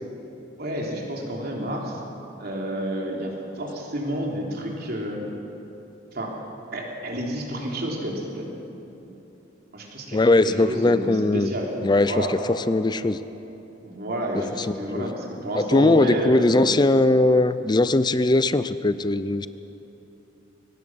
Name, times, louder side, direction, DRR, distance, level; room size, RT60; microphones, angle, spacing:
voice 1, 0.6-2.0 2.4-5.2 6.1-6.4 6.7-8.5 9.7-11.7 12.1-12.3 13.8-16.7, equal, 55° right, -1 dB, 3.5 m, -30 dB
voice 2, 10.1-11.5 11.8-13.2 14.6-15.1 15.5-19.5, left 2 dB, 25° left, 14 dB, 0.5 m, -20 dB
23.5 x 18.5 x 6.3 m, 3.0 s
head